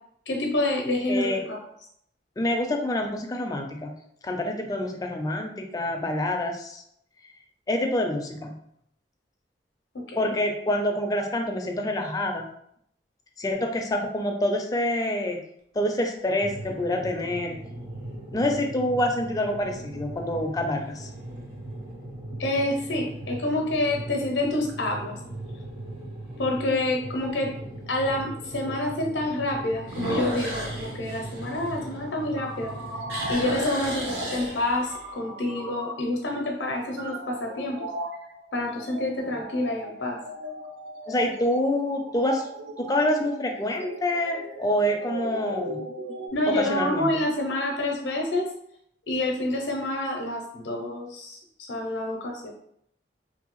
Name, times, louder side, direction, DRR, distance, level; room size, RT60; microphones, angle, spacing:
voice 1, 0.3-1.6 10.1-10.3 22.4-25.1 26.4-27.5 27.9-32.7 33.3-37.8 38.5-40.2 46.3-48.5 49.1-51.4 51.7-52.5, left 1 dB, 85° left, 1 dB, 0.5 m, -28 dB
voice 2, 1.1-1.4 2.4-3.9 4.2-6.8 7.7-8.5 10.2-12.4 13.4-15.4 15.8-17.6 18.3-21.1 41.1-42.4 42.8-45.8 46.5-47.1, left 1 dB, 20° left, 3 dB, 0.4 m, -26 dB
sound 1, 16.2-16.8 17.5-17.6 22.8-23.3 23.8-23.9 24.4-24.5 24.8-24.9 26.4-26.5 29.8-32.4 32.7-35.1, equal, 65° right, 0.9 m, -34 dB
sound 2, 16.4-33.3, right 1 dB, 30° right, 0.6 m, -39 dB
sound 3, 31.8-46.3, right 1 dB, 85° right, 0.5 m, -38 dB
2.7 x 2.6 x 2.9 m, 0.71 s
head